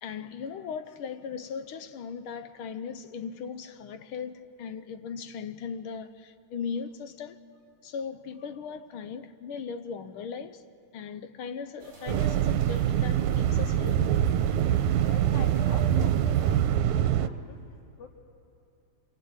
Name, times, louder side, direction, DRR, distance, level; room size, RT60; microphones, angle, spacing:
voice 1, 0.0-7.4 7.8-10.6 10.9-14.3, left 6 dB, 70° left, 1.3 m, -38 dB
sound 1, 11.8-16.8, right 4 dB, 40° right, 5.5 m, -46 dB
sound 2, 12.1-17.3, right 10 dB, 90° right, 2.2 m, -24 dB
voice 2, 14.9-16.6 16.8-18.1, left 6 dB, 85° left, 2.9 m, -46 dB
27.5 x 21.0 x 8.9 m
omnidirectional pair, 3.3 m